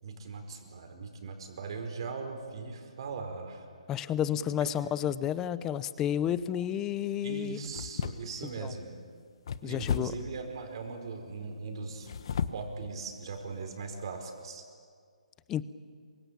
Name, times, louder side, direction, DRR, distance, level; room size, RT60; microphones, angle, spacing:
voice 1, 0.0-3.7 4.3-4.7 7.2-8.9 9.6-12.1 12.5-14.7, right 4 dB, 40° right, 4 dB, 4.8 m, -40 dB
voice 2, 3.9-7.6 8.6-8.7 9.6-10.1 15.5-15.6, left 10 dB, 10° left, 16 dB, 0.6 m, -31 dB
sound 1, 6.2-6.6 7.6-8.6 9.4-10.3 11.9-12.7 13.3-13.4 13.9-14.1, left 7 dB, 45° left, 1.2 m, -35 dB
27.0 x 24.5 x 8.8 m, 2.1 s
hypercardioid pair, 165°, 4 cm